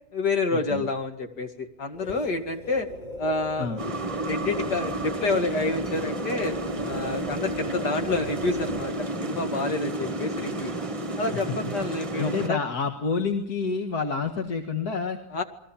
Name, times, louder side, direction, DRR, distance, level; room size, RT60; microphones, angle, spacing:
voice 1, 0.1-2.9 3.2-3.7 4.2-6.6 6.8-10.7 11.2-12.6 15.3-15.4, left 3 dB, 85° left, 5 dB, 2.9 m, -28 dB
sound 1, 1.9-9.3, right 2 dB, 25° left, 3.0 m, -39 dB
sound 2, 3.8-12.5, right 1 dB, 20° right, 1.3 m, -31 dB
voice 2, 12.2-15.2, left 5 dB, 70° left, 4 dB, 2.3 m, -28 dB
29.0 x 22.5 x 7.3 m, 0.70 s
omnidirectional pair, 1.7 m